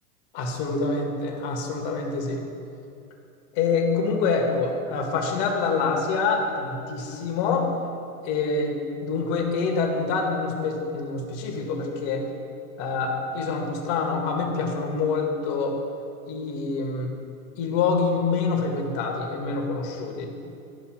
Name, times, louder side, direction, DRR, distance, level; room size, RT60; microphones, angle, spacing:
voice 1, 0.3-2.4 3.5-7.7 8.2-12.3 12.8-15.8 16.2-17.1 17.5-20.3, left 4 dB, 50° left, 2 dB, 1.4 m, -26 dB
12.5 x 5.6 x 2.3 m, 2.6 s
hypercardioid pair, 120°, 45 cm